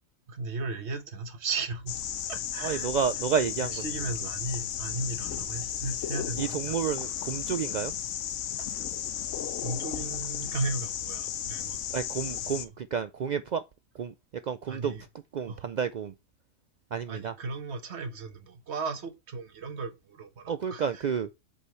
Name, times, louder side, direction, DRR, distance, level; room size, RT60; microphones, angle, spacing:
voice 1, 0.3-2.0 2.3-2.9 3.6-6.8 8.6-8.7 9.6-11.8 14.7-15.0 15.5-15.7 17.1-21.0, right 3 dB, 60° right, 1.4 m, -36 dB
sound 1, 1.9-12.7, left 10 dB, 80° left, 1.0 m, -34 dB
voice 2, 2.6-3.8 6.4-7.9 11.9-13.6 14.0-14.1 14.4-14.9 15.3-16.1 16.9-17.3 20.5-21.3, right 7 dB, 85° right, 0.4 m, -30 dB
8.0 x 5.5 x 3.1 m
omnidirectional pair, 1.3 m